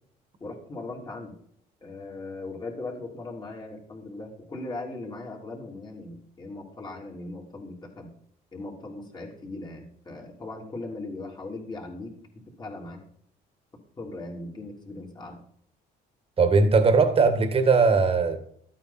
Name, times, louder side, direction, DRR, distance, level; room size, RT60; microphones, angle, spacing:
voice 1, 0.4-1.3 1.8-8.1 8.5-13.0 14.0-15.4, left 2 dB, 25° left, 3.4 m, -39 dB
voice 2, 16.4-18.4, right 4 dB, 35° right, 1.8 m, -19 dB
12.5 x 8.9 x 4.3 m
cardioid pair, 110°, 17 cm